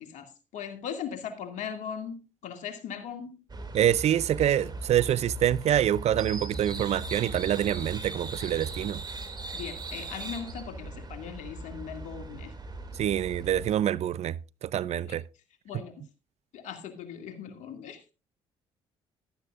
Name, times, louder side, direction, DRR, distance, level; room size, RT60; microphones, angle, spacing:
voice 1, 0.0-3.4 9.5-12.5 15.1-15.2 15.7-16.0 16.5-18.1, left 7 dB, 70° left, 2.2 m, -39 dB
sound 1, 3.5-13.7, right 2 dB, 35° right, 2.4 m, -39 dB
voice 2, 3.7-9.0 13.0-15.2, right 11 dB, 60° right, 0.5 m, -26 dB
15.0 x 12.0 x 2.4 m
hypercardioid pair, 55°, 13 cm